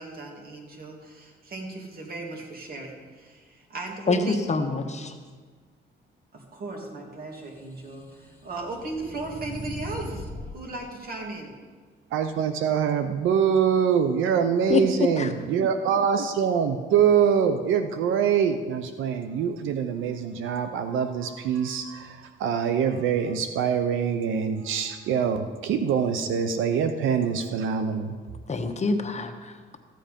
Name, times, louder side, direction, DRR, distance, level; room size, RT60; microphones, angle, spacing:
voice 1, 0.0-4.6 6.3-11.5, right 2 dB, 50° right, 0 dB, 2.7 m, -37 dB
voice 2, 4.5-5.1 14.7-14.8 15.2-15.3 28.5-29.5, left 4 dB, 35° left, 6 dB, 1.1 m, -26 dB
sound 1, 7.6-10.6, left 1 dB, 10° left, 1.7 m, -39 dB
voice 3, 12.1-28.2, right 7 dB, 85° right, 8 dB, 0.7 m, -24 dB
14.5 x 7.7 x 5.2 m, 1.5 s
cardioid pair, 90°, 20 cm